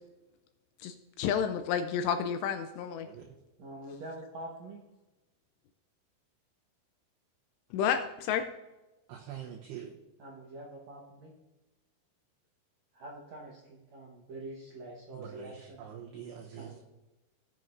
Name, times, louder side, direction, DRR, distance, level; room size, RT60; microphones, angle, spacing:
voice 1, 0.8-3.1 7.7-8.5, left 8 dB, 85° left, 8 dB, 2.5 m, -30 dB
voice 2, 3.6-4.8 10.2-11.3 12.9-15.8 16.5-16.8, right 2 dB, 90° right, -3 dB, 1.5 m, -45 dB
voice 3, 9.1-9.9 15.1-16.8, right 9 dB, 75° right, -1 dB, 2.7 m, -44 dB
18.0 x 7.7 x 2.6 m, 1.1 s
omnidirectional pair, 5.4 m